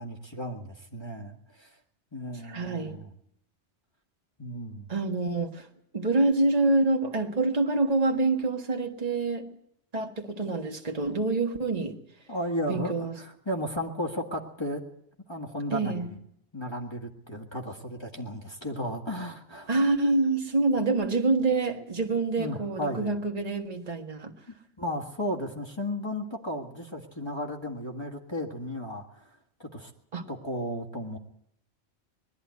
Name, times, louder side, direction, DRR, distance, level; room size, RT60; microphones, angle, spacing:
voice 1, 0.0-1.8 2.1-3.1 4.4-4.9 12.3-14.8 15.3-16.2 16.5-19.7 22.4-23.2 24.8-29.9 30.3-31.2, equal, 25° left, 1.9 m, -34 dB
voice 2, 2.5-3.0 4.9-5.7 5.9-9.5 9.9-12.0 12.7-13.2 15.7-16.1 19.7-24.3 30.1-30.3, right 3 dB, 35° right, 1.7 m, -26 dB
20.5 x 13.0 x 9.6 m
omnidirectional pair, 1.2 m